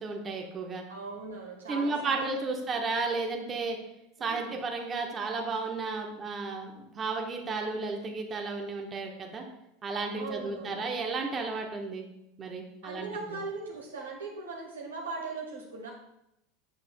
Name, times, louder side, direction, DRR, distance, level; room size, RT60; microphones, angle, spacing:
voice 1, 0.0-0.8 1.7-3.8 4.2-9.4 9.8-12.1 12.4-13.1, right 3 dB, 30° right, 2 dB, 1.1 m, -33 dB
voice 2, 0.9-2.6 4.2-4.6 10.2-10.8 12.8-15.9, right 4 dB, 85° right, -1 dB, 1.4 m, -39 dB
7.8 x 6.7 x 2.2 m, 0.84 s
hypercardioid pair, 85°, 0 cm